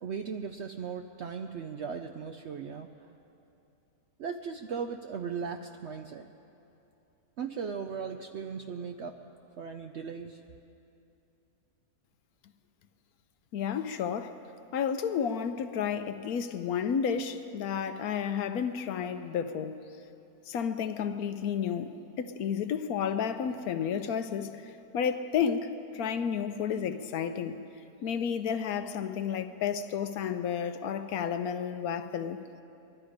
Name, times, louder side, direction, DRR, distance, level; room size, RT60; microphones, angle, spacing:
voice 1, 0.0-2.9 4.2-6.3 7.4-9.2 9.6-10.4, right 6 dB, 65° right, 0.7 m, -37 dB
voice 2, 13.5-14.4 14.7-19.8 20.5-27.6 28.0-32.4, left 7 dB, 75° left, 1.1 m, -31 dB
21.0 x 12.5 x 5.0 m
omnidirectional pair, 1.7 m